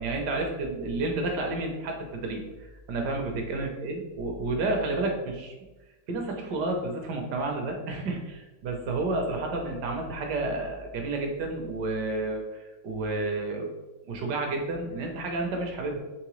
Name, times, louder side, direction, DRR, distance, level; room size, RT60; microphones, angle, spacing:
voice 1, 0.0-5.5 6.1-13.7 14.0-16.0, right 2 dB, 65° right, 2 dB, 1.1 m, -31 dB
4.7 x 3.2 x 3.0 m, 1.1 s
omnidirectional pair, 2.2 m